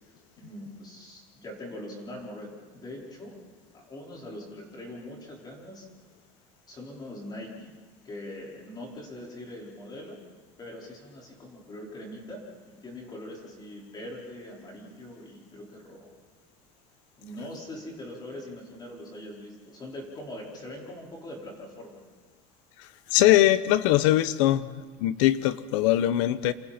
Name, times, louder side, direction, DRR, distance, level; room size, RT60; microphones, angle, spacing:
voice 1, 0.4-3.4 3.7-5.9 6.7-7.8 8.0-10.2 10.6-16.1 17.2-22.0, left 1 dB, 25° left, 5.0 m, -42 dB
voice 2, 23.1-24.7 25.0-26.5, left 14 dB, 85° left, 1.0 m, -21 dB
28.5 x 28.0 x 4.4 m
cardioid pair, 140°, 16 cm